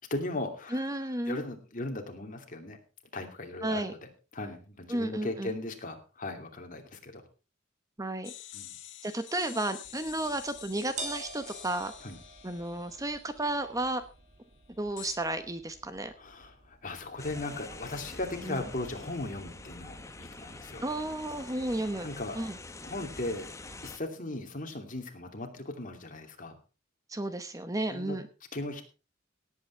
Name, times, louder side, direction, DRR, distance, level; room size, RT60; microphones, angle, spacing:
voice 1, 0.1-0.9 1.3-2.8 3.1-7.2 8.5-8.7 12.0-12.2 16.2-20.8 22.0-22.4 22.8-23.5 23.8-26.5 27.9-28.2 28.5-28.8, left 2 dB, 40° left, 5 dB, 2.7 m, -37 dB
voice 2, 0.7-1.4 3.6-3.9 4.9-5.5 8.0-8.3 9.0-11.9 12.4-14.0 14.8-16.1 18.4-18.6 20.8-22.1 22.3-22.6 27.1-28.3, right 1 dB, 15° right, 10 dB, 0.9 m, -33 dB
sound 1, 8.2-13.9 15.0-15.2, left 12 dB, 65° left, 1.6 m, -48 dB
sound 2, 9.8-19.9, right 2 dB, 40° right, 2.5 m, -48 dB
sound 3, 17.2-24.0, left 2 dB, 15° left, 1.1 m, -46 dB
17.5 x 8.6 x 4.5 m, 0.33 s
head